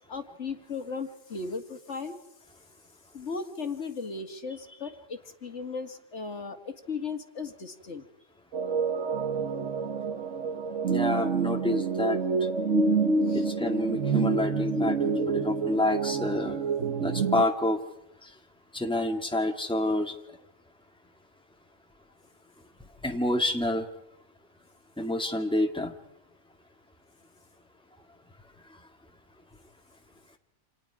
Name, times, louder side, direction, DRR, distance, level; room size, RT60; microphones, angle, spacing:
voice 1, 0.0-2.2 3.1-8.0 13.3-13.5, left 4 dB, 70° left, 6 dB, 2.2 m, -36 dB
sound 1, 8.5-17.4, right 4 dB, 85° right, 1.7 m, -28 dB
voice 2, 10.8-12.2 13.3-16.6 17.0-17.8 18.2-18.3 18.7-20.2 23.0-23.9 25.0-25.9, left 1 dB, 5° left, 3 dB, 2.1 m, -28 dB
29.5 x 27.5 x 4.8 m, 0.86 s
omnidirectional pair, 1.2 m